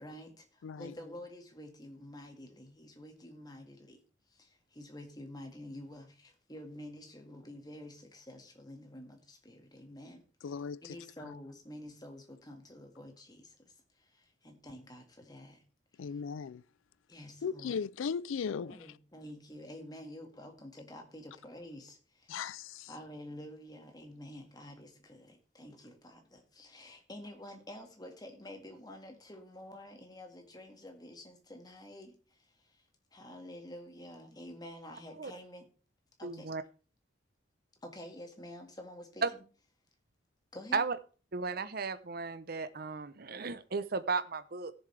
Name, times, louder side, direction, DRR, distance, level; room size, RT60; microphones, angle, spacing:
voice 1, 0.0-4.0 4.3-10.2 10.8-15.6 17.1-17.7 18.5-22.4 22.9-32.8 33.1-35.7 36.2-36.7 37.8-39.4 40.5-40.8, left 1 dB, 20° left, 1.8 m, -49 dB
voice 2, 0.6-0.9 10.4-11.0 11.2-11.3 16.0-16.6 17.4-18.8 22.3-22.9, left 6 dB, 80° left, 0.4 m, -37 dB
voice 3, 36.2-36.6 39.2-39.3 40.7-41.0 41.3-44.7, right 4 dB, 50° right, 0.7 m, -34 dB
16.5 x 7.1 x 3.3 m
head